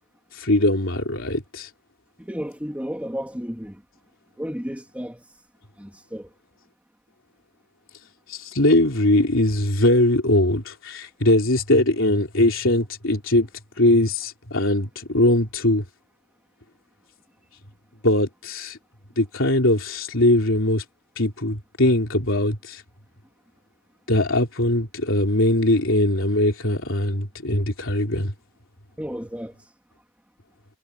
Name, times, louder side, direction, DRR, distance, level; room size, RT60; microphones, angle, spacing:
voice 1, 0.3-1.7 8.3-13.5 13.8-15.8 18.0-18.8 19.2-20.8 21.2-22.8 24.1-28.3, left 1 dB, 65° left, 3.9 m, -21 dB
voice 2, 2.2-3.8 4.4-5.3 5.8-6.3 29.0-29.7, equal, 5° right, 2.7 m, -33 dB
head